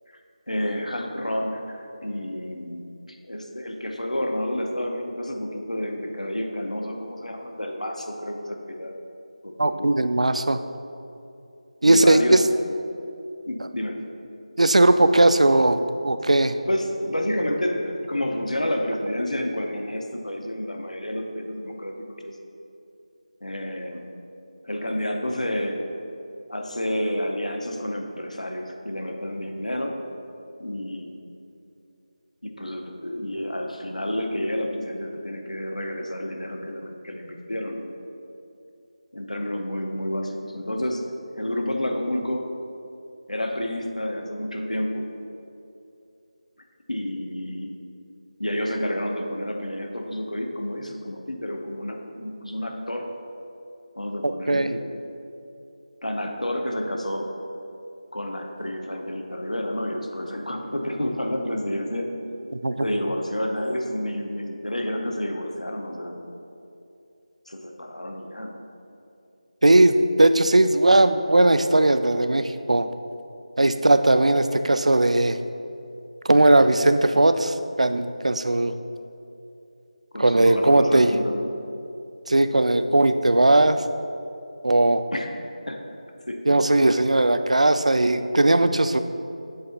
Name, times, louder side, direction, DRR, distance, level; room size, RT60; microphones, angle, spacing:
voice 1, 0.5-2.8 3.3-8.9 9.4-9.9 11.8-12.4 13.5-14.0 16.7-22.4 23.4-24.1 24.6-25.9 26.5-29.9 30.6-31.1 32.4-37.8 39.1-41.0 41.4-42.5 43.3-45.1 46.9-47.7 48.4-53.0 54.0-54.8 56.0-57.3 58.1-62.1 62.8-66.2 67.5-68.6 80.1-81.5 85.1-85.3 85.7-85.8 86.3-86.4, left 1 dB, 75° left, 2 dB, 0.9 m, -29 dB
voice 2, 9.6-10.6 11.8-12.4 14.6-15.8 16.0-16.5 54.2-54.7 62.6-62.9 69.6-72.9 73.6-75.4 76.3-78.8 80.2-81.1 82.3-83.8 84.6-85.0 86.5-89.0, right 2 dB, 65° right, 10 dB, 0.4 m, -18 dB
7.8 x 3.6 x 5.4 m, 2.6 s
figure-of-eight pair, 165°, 4 cm